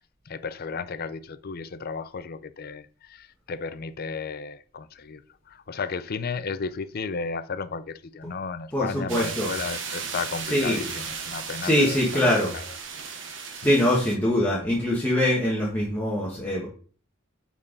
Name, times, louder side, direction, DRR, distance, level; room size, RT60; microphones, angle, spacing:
voice 1, 0.3-5.2 5.5-12.2 12.5-12.6 13.6-13.7, left 5 dB, 50° left, 0.5 m, -34 dB
voice 2, 8.7-9.5 10.4-10.8 11.6-12.5 13.6-16.7, left 1 dB, 10° left, 1.6 m, -23 dB
sound 1, 9.1-14.2, right 6 dB, 65° right, 1.1 m, -35 dB
8.6 x 4.5 x 4.0 m
head